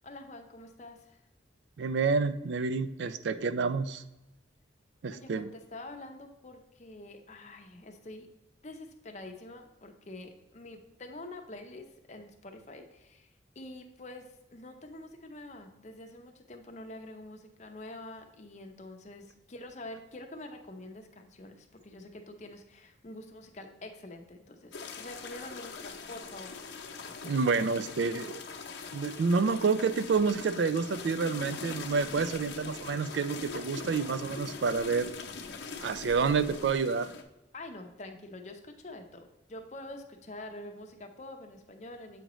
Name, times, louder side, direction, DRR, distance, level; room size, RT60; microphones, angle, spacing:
voice 1, 0.0-1.2 5.1-8.3 8.6-13.3 13.6-26.6 37.5-42.2, left 2 dB, 40° left, 4 dB, 0.7 m, -46 dB
voice 2, 1.8-4.0 5.0-5.5 27.2-28.4 28.9-35.1 35.8-37.1, right 5 dB, 75° right, 13 dB, 0.4 m, -29 dB
sound 1, 24.7-37.2, left 4 dB, 80° left, 0.7 m, -42 dB
7.7 x 5.0 x 3.0 m, 0.95 s
head